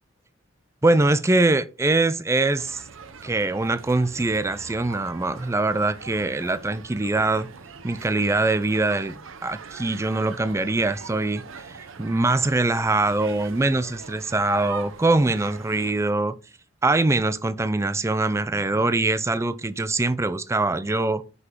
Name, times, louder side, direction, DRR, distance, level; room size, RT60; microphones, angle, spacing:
voice 1, 0.8-2.8 3.2-7.5 7.8-16.3 16.8-21.2, right 2 dB, 15° right, 0.4 m, -23 dB
sound 1, 2.6-15.9, right 5 dB, 65° right, 0.8 m, -42 dB
5.9 x 5.8 x 3.6 m
head